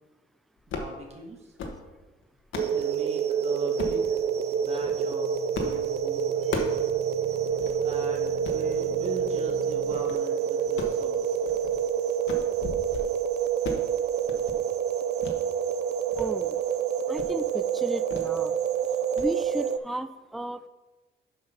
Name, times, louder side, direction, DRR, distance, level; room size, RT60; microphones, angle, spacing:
sound 1, 0.6-1.0 1.4-1.8 2.2-2.8 3.8-4.0 4.7-5.0 5.5-5.8 6.1-6.9 7.2-7.3 7.6-7.8 8.3-8.6 9.2-9.5 9.8-10.2 10.6-11.8 12.1-12.5 12.8-13.1 13.4-13.9 14.2-14.6 15.2-15.4 15.8-16.3 16.6-16.7 17.1-17.4 18.1-18.3 18.6-18.8 19.2-19.3, left 3 dB, 80° left, 1.4 m, -37 dB
voice 1, 0.7-1.5 2.7-4.2 4.6-5.3 5.6-6.2 7.8-11.4, right 2 dB, 30° right, 0 dB, 1.4 m, -40 dB
sound 2, 2.6-19.8, right 8 dB, 60° right, 0.5 m, -27 dB
sound 3, 4.2-10.0 12.6-13.3, left 6 dB, 55° left, 1.2 m, -44 dB
voice 2, 16.2-16.6 17.1-18.6 19.2-20.7, right 1 dB, ahead, 11 dB, 0.4 m, -34 dB
7.5 x 5.4 x 5.8 m, 1.2 s
cardioid pair, 90°, 20 cm